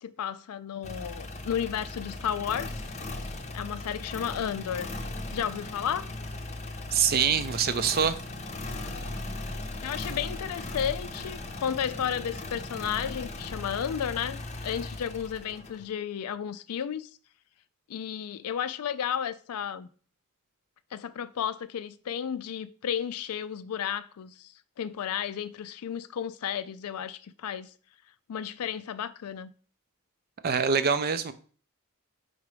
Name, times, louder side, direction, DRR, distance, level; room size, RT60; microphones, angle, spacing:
voice 1, 0.0-2.7 3.5-4.9 5.3-6.1 9.8-17.1 17.9-19.9 20.9-27.7 28.3-29.5, left 8 dB, 80° left, 0.4 m, -33 dB
sound 1, 0.8-15.9, left 2 dB, 30° left, 0.6 m, -38 dB
voice 2, 6.9-8.1 30.4-31.3, right 6 dB, 45° right, 0.5 m, -24 dB
4.7 x 4.1 x 5.0 m
head